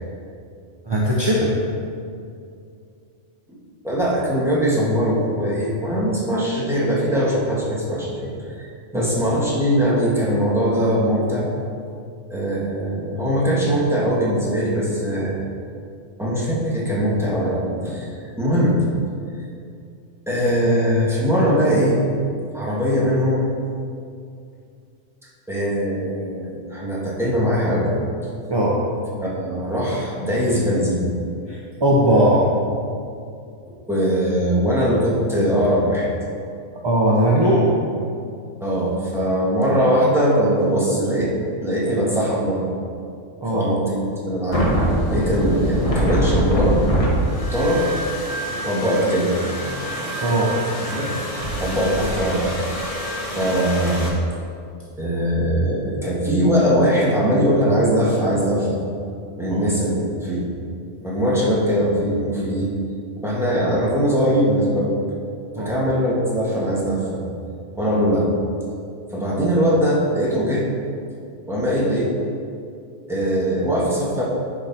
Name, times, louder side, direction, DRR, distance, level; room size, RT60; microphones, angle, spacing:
voice 1, 0.9-1.5 8.9-9.1 28.5-28.8 31.5-32.5 36.8-37.7 43.4-43.7 49.7-50.6 59.5-59.6 65.6-65.7, right 1 dB, 25° right, -4 dB, 0.6 m, -19 dB
voice 2, 3.8-11.5 12.3-15.4 16.2-18.8 20.3-22.0 22.5-23.5 25.5-28.0 29.2-31.1 33.9-36.1 38.6-41.3 41.6-42.7 43.5-44.7 45.0-46.8 47.5-47.9 48.5-49.3 50.9-51.1 51.6-53.0 53.3-54.1 55.0-58.8 59.4-60.5 61.0-62.7 63.2-64.9 65.6-67.2 67.7-68.3 69.1-70.7 71.5-72.1 73.1-74.2, equal, ahead, -7 dB, 1.6 m, -21 dB
sound 1, 44.5-54.1, equal, 30° left, 1.2 m, -24 dB
10.0 x 4.9 x 4.2 m, 2.4 s
omnidirectional pair, 1.4 m